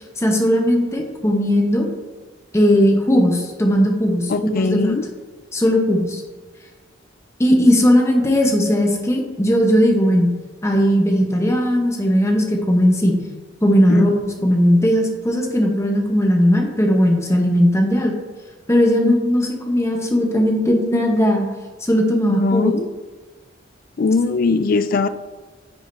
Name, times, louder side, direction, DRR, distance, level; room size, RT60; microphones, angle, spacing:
voice 1, 0.2-1.9 2.5-5.1 5.5-6.2 7.4-10.3 10.6-13.2 13.6-18.1 18.7-21.5 21.8-22.7, equal, 15° left, 1 dB, 0.9 m, -17 dB
voice 2, 4.3-5.0 13.9-14.5 19.0-19.1 22.3-22.9 24.0-25.1, left 4 dB, 50° left, 12 dB, 0.4 m, -20 dB
9.6 x 4.9 x 2.7 m, 1.3 s
head